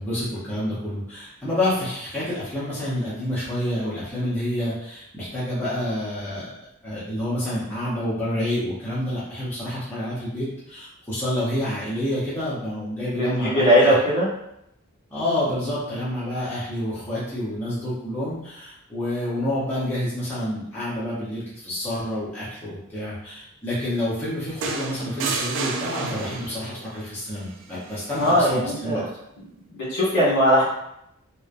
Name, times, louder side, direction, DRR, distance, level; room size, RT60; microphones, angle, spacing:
voice 1, 0.0-6.5 6.8-14.0 15.1-29.0, left 1 dB, 10° left, -11 dB, 0.7 m, -28 dB
voice 2, 13.2-14.3 28.2-29.1 29.7-30.6, equal, 55° left, -7 dB, 1.4 m, -19 dB
sound 1, 24.6-26.7 28.1-28.4, right 4 dB, 60° right, 0.3 m, -30 dB
2.9 x 2.1 x 2.4 m, 0.78 s
head